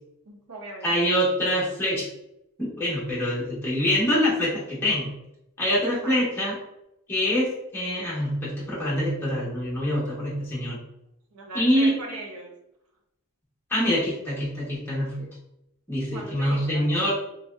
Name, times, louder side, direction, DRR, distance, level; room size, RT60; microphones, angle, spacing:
voice 1, 0.3-1.1 6.0-6.2 11.3-12.5 16.1-17.1, right 2 dB, 85° right, 0 dB, 0.5 m, -39 dB
voice 2, 0.8-2.1 2.6-5.1 5.6-6.5 7.1-10.8 11.5-11.9 13.7-15.3 15.9-17.1, equal, 10° left, -8 dB, 0.9 m, -25 dB
3.0 x 2.7 x 2.3 m, 0.85 s
head